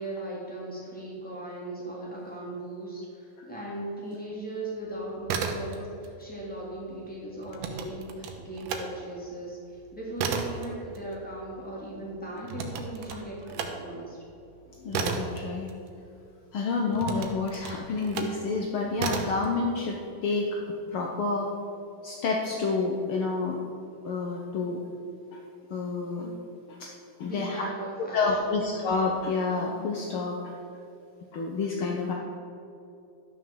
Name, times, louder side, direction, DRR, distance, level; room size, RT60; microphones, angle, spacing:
voice 1, 0.0-14.2 27.2-28.6, right 1 dB, 5° left, -6 dB, 2.7 m, -38 dB
sound 1, 5.1-6.1 6.4-8.9 9.3-16.3 16.9-18.4 19.0-19.5, right 6 dB, 80° right, 2.5 m, -34 dB
voice 2, 14.7-15.7 16.5-21.5 22.0-23.6 24.0-24.8 25.3-25.4 25.7-26.3 26.7-26.9 27.2-27.7 28.0-30.5 31.3-32.1, left 4 dB, 75° left, 0 dB, 1.2 m, -29 dB
12.0 x 6.3 x 7.0 m, 2.6 s
omnidirectional pair, 3.6 m